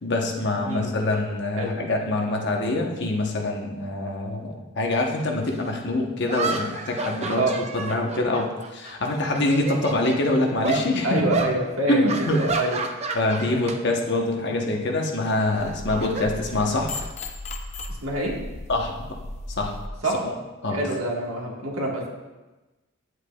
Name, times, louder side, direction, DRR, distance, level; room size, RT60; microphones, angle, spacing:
voice 1, 0.0-11.2 11.9-12.6 13.1-16.9 18.7-19.1 19.6-19.7 20.2-20.3 20.6-20.8, left 2 dB, 55° left, 1 dB, 1.0 m, -25 dB
sound 1, 5.5-5.6 6.3-8.9 9.2-10.2 10.6-10.9 11.3-11.5 12.1-13.8 14.1-14.4 15.5-17.0, right 3 dB, 30° right, 0.5 m, -30 dB
voice 2, 11.0-12.8 13.5-13.6 18.0-18.3 20.0-20.3 20.7-22.1, right 1 dB, 75° right, -2 dB, 1.6 m, -26 dB
sound 2, 15.6-19.9, left 2 dB, 30° left, 0.5 m, -36 dB
9.6 x 8.0 x 2.3 m, 1.1 s
head